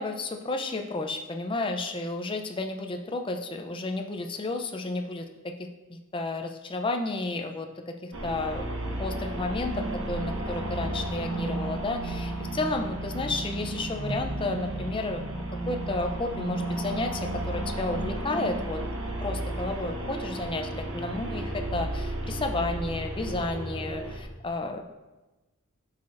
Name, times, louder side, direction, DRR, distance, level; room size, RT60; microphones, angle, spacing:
voice 1, 0.0-5.3 5.6-15.2 15.7-18.8 19.2-24.8, left 2 dB, 20° left, 5 dB, 0.5 m, -32 dB
sound 1, 8.1-24.2, right 1 dB, 60° right, 1.2 m, -33 dB
10.0 x 5.8 x 2.5 m, 1.1 s
head